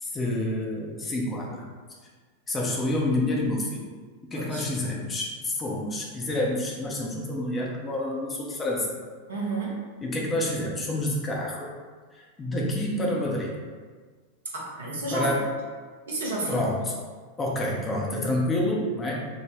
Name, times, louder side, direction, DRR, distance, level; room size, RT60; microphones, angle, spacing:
voice 1, 0.0-1.6 2.5-3.8 4.2-8.9 10.0-11.8 12.1-13.5 15.1-15.4 16.5-16.9 17.4-19.3, left 1 dB, 20° left, -2 dB, 0.6 m, -28 dB
voice 2, 4.3-4.7 9.3-9.8 14.5-15.3 16.1-16.6, right 2 dB, 65° right, -4 dB, 0.8 m, -31 dB
3.6 x 2.1 x 2.9 m, 1.5 s
figure-of-eight pair, 90°, 0 cm